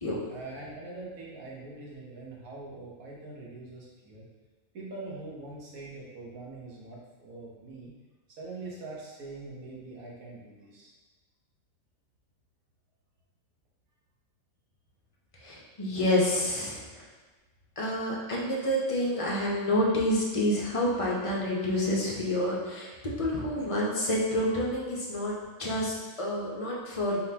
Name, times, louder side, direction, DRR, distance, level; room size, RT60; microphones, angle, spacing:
voice 1, 0.3-4.3 4.7-7.9 8.4-10.9 23.1-23.3, right 2 dB, 75° right, -4 dB, 1.4 m, -43 dB
voice 2, 15.4-17.1 17.8-27.2, left 1 dB, 30° left, -4 dB, 0.6 m, -28 dB
4.4 x 3.7 x 2.8 m, 1.3 s
omnidirectional pair, 1.5 m